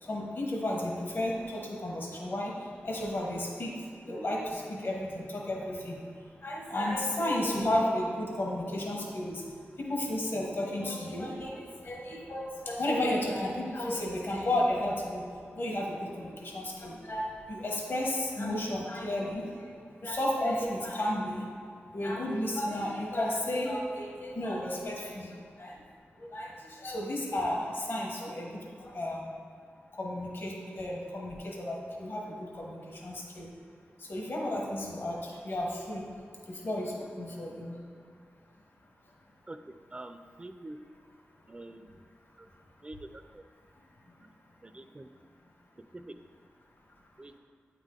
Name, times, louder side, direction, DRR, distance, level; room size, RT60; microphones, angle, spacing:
voice 1, 0.0-2.5 2.8-3.7 4.0-6.0 6.4-9.4 9.8-15.2 15.6-19.7 20.0-21.4 21.9-25.8 26.3-29.3 30.0-33.5 34.0-36.0 36.5-37.7, left 1 dB, 55° left, -2 dB, 1.1 m, -33 dB
voice 2, 39.9-40.8 41.5-41.9 42.8-43.0 44.6-45.1 47.2-47.4, right 2 dB, 25° right, 8 dB, 0.4 m, -45 dB
8.7 x 3.6 x 3.7 m, 2.4 s
wide cardioid pair, 80°, 4 cm